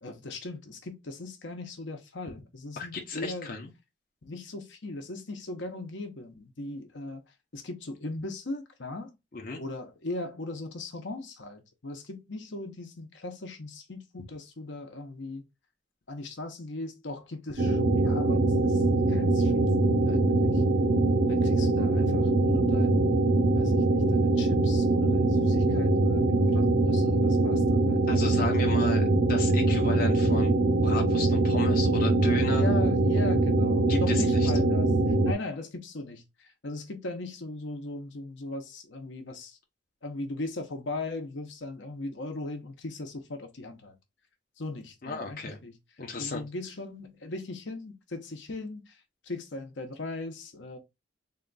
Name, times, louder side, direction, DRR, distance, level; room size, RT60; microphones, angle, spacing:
voice 1, 0.0-3.5 4.2-7.2 7.5-9.1 9.6-15.4 16.1-18.8 19.1-20.6 21.3-23.1 23.6-28.9 32.4-34.9 35.2-39.6 40.0-43.9 44.6-45.8 46.2-50.8, left 2 dB, 70° left, 0.9 m, -39 dB
voice 2, 2.8-3.7 9.3-9.6 28.1-30.5 30.8-32.7 33.9-34.5 45.0-45.6 46.0-46.4, left 3 dB, 50° left, 0.8 m, -34 dB
sound 1, 17.6-35.3, right 2 dB, 65° right, 0.6 m, -23 dB
3.8 x 2.3 x 3.9 m
head